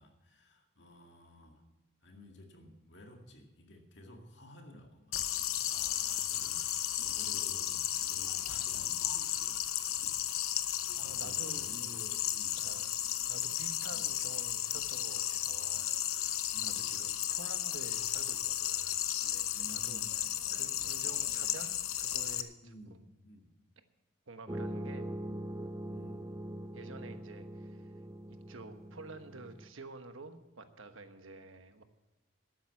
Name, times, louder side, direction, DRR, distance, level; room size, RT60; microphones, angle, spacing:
voice 1, 0.0-1.6 2.0-5.2 5.5-5.8 6.3-10.1 10.4-12.6 13.9-14.1 16.5-17.0 19.5-20.7 21.0-21.2 22.6-23.5 25.9-26.4, equal, 55° left, 3 dB, 2.1 m, -54 dB
sound 1, 5.1-22.4, left 12 dB, 85° left, 0.8 m, -34 dB
voice 2, 5.7-6.4 10.9-11.8 12.6-12.9 13.3-20.0 20.5-22.7 24.3-25.1 26.7-27.9 28.3-31.8, right 3 dB, 70° right, 8 dB, 1.2 m, -50 dB
sound 2, 24.5-29.7, right 1 dB, 15° right, 0.4 m, -42 dB
12.5 x 9.3 x 7.1 m, 1.1 s
head